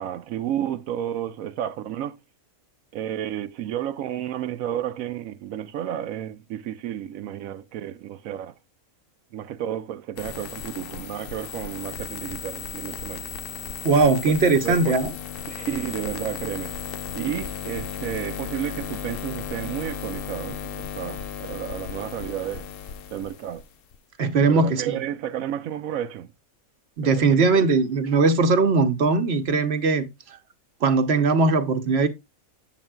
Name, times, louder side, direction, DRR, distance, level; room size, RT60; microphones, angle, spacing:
voice 1, 0.0-2.2 2.9-8.5 9.3-13.3 14.2-14.3 14.6-15.0 15.5-16.8 17.1-22.7 23.1-23.6 24.4-26.3 27.0-27.1 27.6-27.7, right 11 dB, 80° right, 1.0 m, -31 dB
sound 1, 10.2-24.0, left 8 dB, 65° left, 0.5 m, -35 dB
voice 2, 13.8-15.1 24.2-25.0 27.0-30.1 30.8-32.1, right 4 dB, 55° right, 1.0 m, -20 dB
7.9 x 7.5 x 2.2 m
omnidirectional pair, 1.4 m